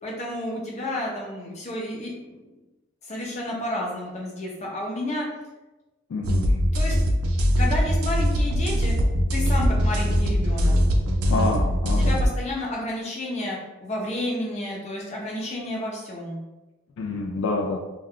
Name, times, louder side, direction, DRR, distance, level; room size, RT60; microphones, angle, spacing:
voice 1, 0.0-2.3 3.0-5.3 6.7-7.0 7.6-8.9 9.3-10.7 12.0-16.4, left 1 dB, 30° left, -3 dB, 0.6 m, -31 dB
voice 2, 6.1-6.6 11.3-12.2 17.0-17.8, left 3 dB, 70° left, 0 dB, 0.3 m, -27 dB
sound 1, 6.2-12.3, equal, 85° right, 0.4 m, -21 dB
2.3 x 2.2 x 3.5 m, 1.1 s
head